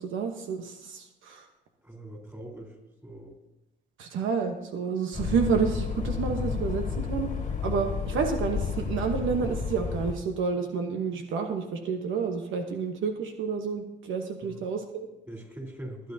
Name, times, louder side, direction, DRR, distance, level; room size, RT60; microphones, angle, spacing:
voice 1, 0.0-1.4 4.0-7.3 7.6-15.1, right 5 dB, 80° right, 4 dB, 1.1 m, -29 dB
voice 2, 1.8-2.8 3.0-3.3 14.4-14.6 15.3-16.1, right 1 dB, 10° right, 0 dB, 3.9 m, -42 dB
sound 1, 5.1-10.1, left 6 dB, 35° left, 1.7 m, -31 dB
24.0 x 9.1 x 2.8 m, 0.97 s
cardioid pair, 90°, 20 cm